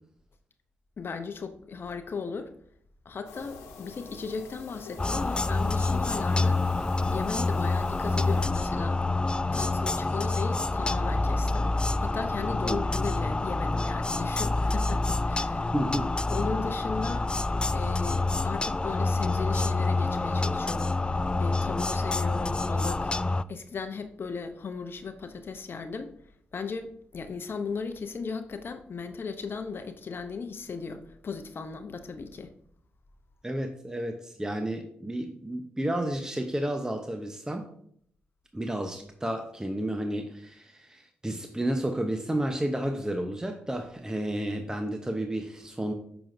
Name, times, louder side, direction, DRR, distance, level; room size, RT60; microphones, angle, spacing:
voice 1, 1.0-2.5 3.0-6.6 7.1-9.0 9.5-11.7 12.0-15.7 16.3-17.3 17.7-26.1 26.5-32.5, left 5 dB, 50° left, 0.7 m, -36 dB
sound 1, 3.3-8.5, left 3 dB, 80° left, 1.1 m, -46 dB
sound 2, 5.0-23.4, left 2 dB, 20° left, 0.3 m, -27 dB
voice 2, 15.7-16.4 33.4-37.7 38.5-45.9, right 1 dB, 15° right, 0.9 m, -31 dB
8.7 x 6.0 x 2.7 m
supercardioid pair, 45°, 5 cm